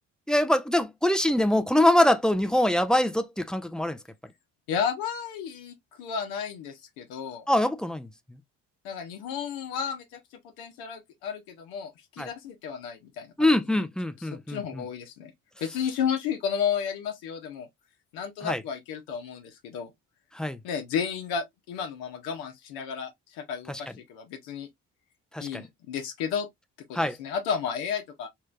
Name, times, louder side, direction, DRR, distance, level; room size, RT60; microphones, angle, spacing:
voice 1, 0.3-4.0 7.5-8.4 12.2-12.3 13.4-14.8 18.4-18.6 20.3-20.6 23.7-23.8 25.3-25.6 26.9-27.2, left 1 dB, ahead, 0.5 m, -24 dB
voice 2, 4.7-7.4 8.8-10.2 10.6-13.8 14.2-15.3 15.6-17.7 18.1-19.9 20.6-24.7 25.4-26.5 26.9-28.3, left 7 dB, 75° left, 0.9 m, -32 dB
3.2 x 3.1 x 2.4 m
hypercardioid pair, 45°, 39 cm